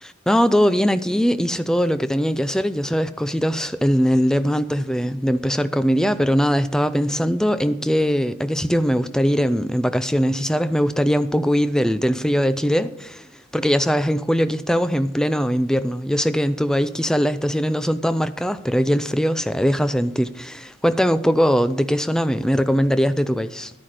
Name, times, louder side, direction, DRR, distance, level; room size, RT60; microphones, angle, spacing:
voice 1, 0.0-13.3 13.5-23.7, equal, 5° left, 0.4 m, -21 dB
11.5 x 10.0 x 5.0 m
head